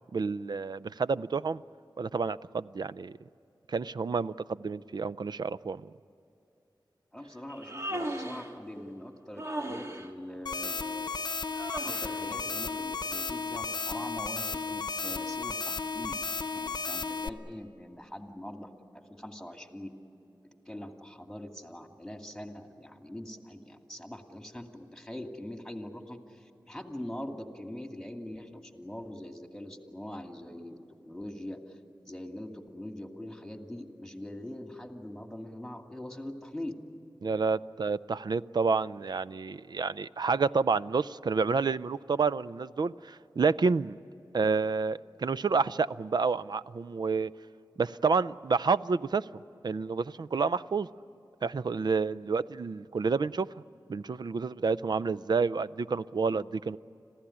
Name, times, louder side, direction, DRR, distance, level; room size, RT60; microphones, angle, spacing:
voice 1, 0.1-1.6 2.0-3.1 3.7-5.8 37.2-44.0 44.3-47.3 47.8-49.3 49.6-50.9 51.4-53.5 53.9-56.8, right 4 dB, 60° right, 18 dB, 0.5 m, -29 dB
voice 2, 7.1-11.1 11.8-19.9 20.4-30.8 31.1-31.8 32.0-36.7, left 1 dB, 5° left, 4 dB, 2.4 m, -43 dB
Human voice, 7.5-8.5 9.4-10.1 11.5-12.2, right 1 dB, 35° right, 2.0 m, -37 dB
sound 1, 10.5-17.3, left 4 dB, 60° left, 0.8 m, -34 dB
26.5 x 16.0 x 9.9 m, 2.8 s
cardioid pair, 50°, 8 cm